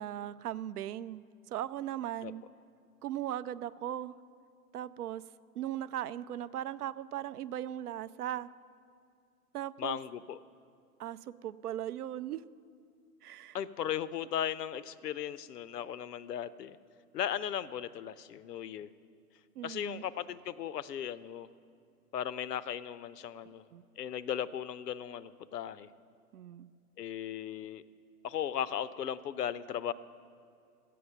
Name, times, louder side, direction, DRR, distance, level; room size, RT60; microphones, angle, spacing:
voice 1, 0.0-2.4 3.0-4.2 4.7-5.2 5.6-8.5 9.5-10.0 11.0-12.4 13.2-13.6 19.6-20.0 23.7-23.8 26.3-26.7, right 11 dB, 70° right, 17 dB, 0.5 m, -38 dB
voice 2, 9.8-10.4 13.5-16.8 17.1-18.9 19.6-21.5 22.1-23.6 24.0-25.9 27.0-27.8 28.2-29.9, left 9 dB, 80° left, 17 dB, 0.6 m, -37 dB
12.5 x 8.4 x 5.7 m, 2.4 s
hypercardioid pair, 125°, 47 cm